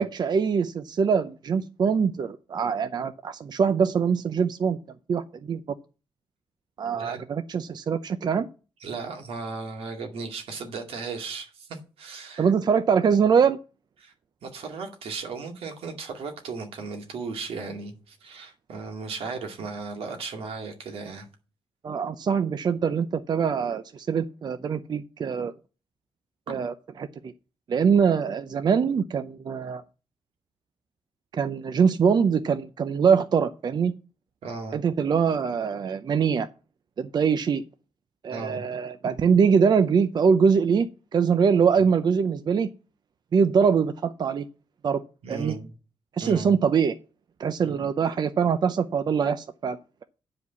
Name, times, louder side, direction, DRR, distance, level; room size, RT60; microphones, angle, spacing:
voice 1, 0.0-4.8 5.1-5.6 6.8-8.5 12.4-13.6 21.8-25.5 26.5-27.3 27.7-29.8 31.3-33.9 34.7-36.5 37.0-37.6 38.2-42.7 43.3-44.5 44.8-45.0 45.3-45.6 46.1-46.9 47.4-50.0, right 6 dB, 45° right, 0.6 m, -23 dB
voice 2, 6.9-7.2 8.8-12.5 14.0-14.1 14.4-21.3 34.4-34.8 38.3-38.7 45.2-45.7 46.2-46.6 47.6-47.8, right 4 dB, 80° right, 2.2 m, -36 dB
9.5 x 5.0 x 6.9 m
wide cardioid pair, 130°, 10 cm